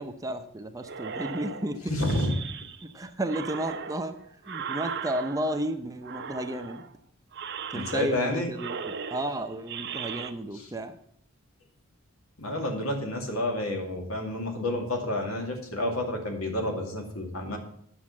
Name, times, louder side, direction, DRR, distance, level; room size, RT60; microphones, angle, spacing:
voice 1, 0.0-2.0 2.8-4.2 4.5-6.8 7.7-11.0, right 1 dB, 15° right, 8 dB, 0.6 m, -33 dB
sound 1, 0.8-2.9 3.3-5.7 6.0-6.9 7.3-8.3 8.5-10.3, right 6 dB, 55° right, 0.7 m, -38 dB
voice 2, 1.9-2.3 7.7-8.5 12.4-17.6, left 1 dB, 85° left, 2 dB, 2.4 m, -29 dB
9.6 x 6.3 x 7.2 m, 0.63 s
head